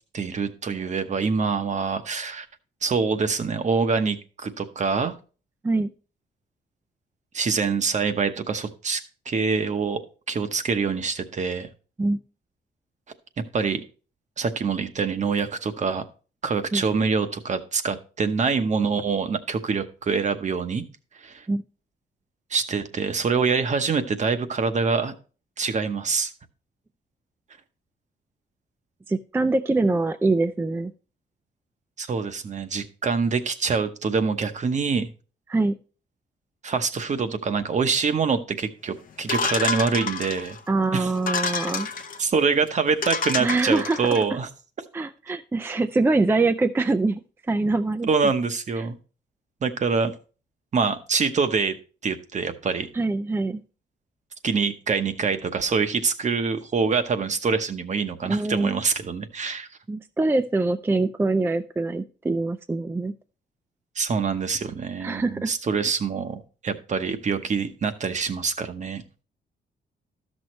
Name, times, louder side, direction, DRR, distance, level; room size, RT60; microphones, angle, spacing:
voice 1, 0.1-2.5 2.8-5.2 7.3-10.0 10.3-11.7 13.5-13.8 14.4-16.0 16.4-20.8 21.2-21.5 22.5-25.1 25.6-26.3 32.0-35.1 36.6-40.6 40.9-41.1 41.4-41.5 42.2-44.5 48.1-49.0 49.6-50.1 50.7-51.8 52.0-52.9 54.4-59.7 64.0-69.0, right 5 dB, 40° right, 9 dB, 0.9 m, -25 dB
voice 2, 29.1-30.9 35.5-35.8 40.7-41.9 43.4-44.1 44.9-47.2 47.5-48.1 48.8-48.9 52.9-53.6 58.3-58.7 59.9-63.1 65.0-65.5, right 3 dB, 15° right, 8 dB, 0.4 m, -24 dB
sound 1, 39.3-40.6 41.2-42.2 42.7-42.8 43.0-44.2, left 5 dB, 50° left, 0.7 m, -28 dB
12.5 x 6.3 x 3.1 m, 0.36 s
cardioid pair, 110°, 18 cm